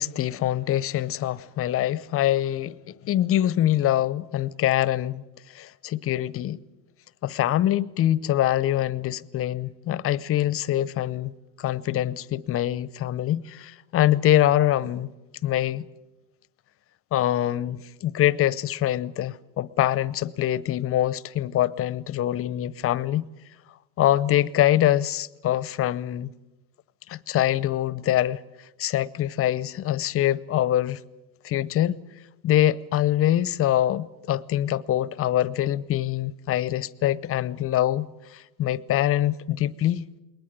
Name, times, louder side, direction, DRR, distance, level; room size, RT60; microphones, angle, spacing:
voice 1, 0.0-2.7 3.0-5.2 5.5-6.6 7.2-11.3 11.6-15.1 15.4-15.9 17.1-23.2 24.0-26.3 27.1-28.4 28.8-31.0 31.4-32.0 32.4-38.1 38.3-40.0, left 12 dB, 30° left, 0.7 m, -24 dB
21.5 x 19.5 x 9.3 m
hypercardioid pair, 105°, 44 cm